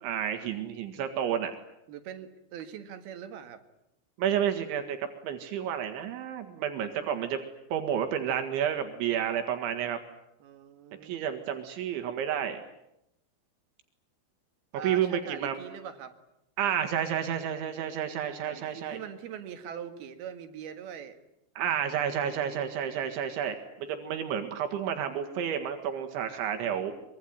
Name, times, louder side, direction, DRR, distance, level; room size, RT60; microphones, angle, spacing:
voice 1, 0.0-1.5 4.2-5.0 5.2-7.4 7.7-10.0 11.0-12.6 14.8-15.6 16.6-19.0 21.6-26.9, right 9 dB, 80° right, 6 dB, 4.1 m, -30 dB
voice 2, 1.9-3.6 10.4-11.3 14.7-16.2 18.3-21.2, right 9 dB, 65° right, 9 dB, 3.3 m, -42 dB
24.0 x 24.0 x 9.4 m, 0.84 s
omnidirectional pair, 5.3 m